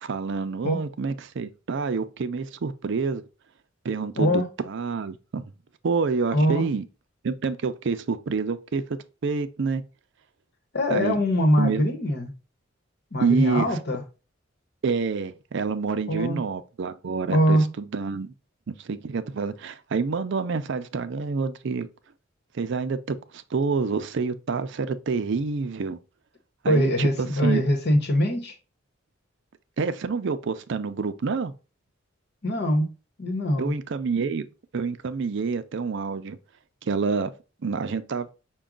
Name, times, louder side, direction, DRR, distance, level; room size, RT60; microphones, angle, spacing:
voice 1, 0.0-3.2 3.8-5.4 5.8-6.8 7.2-9.8 10.9-11.2 11.6-11.8 13.2-13.8 14.8-18.3 18.7-21.9 22.5-26.0 26.6-27.6 29.8-31.5 33.6-34.5 34.7-36.4 36.8-37.3 37.6-38.3, right 4 dB, 65° right, 0.5 m, -27 dB
voice 2, 4.1-4.5 6.3-6.7 10.7-12.3 13.1-14.0 16.1-16.4 17.3-17.7 26.7-28.5 32.4-32.9 33.2-33.8, equal, 55° left, 1.0 m, -22 dB
6.0 x 2.2 x 3.7 m
head